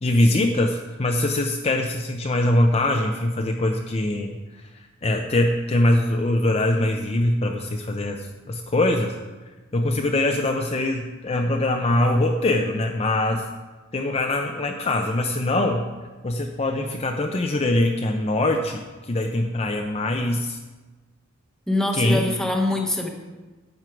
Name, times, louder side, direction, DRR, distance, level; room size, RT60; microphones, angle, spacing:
voice 1, 0.0-4.4 5.0-9.2 9.7-13.5 13.9-15.9 16.2-20.6 21.9-22.2, left 1 dB, 30° left, 3 dB, 0.5 m, -22 dB
voice 2, 21.7-23.1, left 1 dB, 5° left, 2 dB, 1.0 m, -23 dB
11.0 x 7.4 x 4.6 m, 1.2 s
head